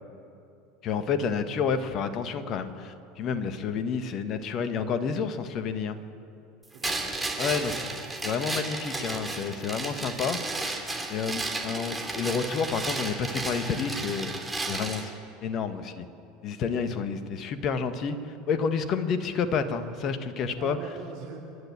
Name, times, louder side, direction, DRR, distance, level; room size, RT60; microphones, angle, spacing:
voice 1, 0.8-6.0 7.4-7.7 8.2-10.4 11.1-14.4 14.7-15.1 15.4-16.0 16.4-20.8, left 6 dB, 40° left, 10 dB, 1.6 m, -29 dB
sound 1, 6.8-15.1, right 2 dB, 10° right, 3.0 m, -33 dB
voice 2, 7.4-7.8 16.7-17.0 20.6-21.4, right 6 dB, 50° right, 0 dB, 2.9 m, -43 dB
29.5 x 12.0 x 7.4 m, 2.7 s
figure-of-eight pair, 75°, 0 cm